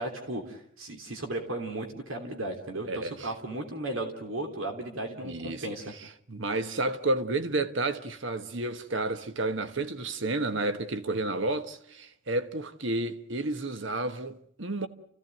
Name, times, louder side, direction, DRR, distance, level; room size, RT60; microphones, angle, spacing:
voice 1, 0.0-5.9, right 1 dB, 90° right, 3.2 m, -35 dB
voice 2, 2.9-3.3 5.2-5.7 6.3-14.9, right 2 dB, 70° right, 1.3 m, -31 dB
29.0 x 16.0 x 9.1 m
head